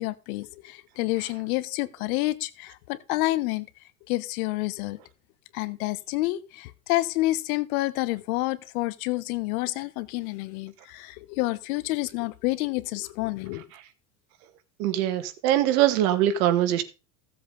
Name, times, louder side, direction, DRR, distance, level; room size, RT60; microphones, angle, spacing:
voice 1, 0.0-3.7 4.1-5.0 5.5-13.6, left 19 dB, 70° left, 1.1 m, -29 dB
voice 2, 14.8-16.8, right 12 dB, 70° right, 2.0 m, -22 dB
15.5 x 7.6 x 4.0 m
supercardioid pair, 135°, 45 cm